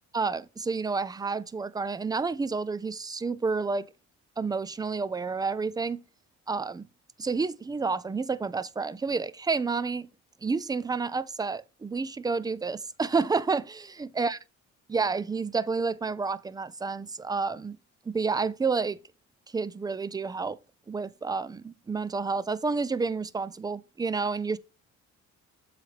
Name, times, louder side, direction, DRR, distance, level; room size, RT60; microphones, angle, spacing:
voice 1, 0.1-3.9 4.4-6.0 6.5-6.8 7.2-10.1 10.4-14.4 14.9-17.8 18.1-19.0 19.5-20.6 20.9-24.6, right 4 dB, 15° right, 0.3 m, -30 dB
7.6 x 3.2 x 4.9 m
cardioid pair, 90°, 30 cm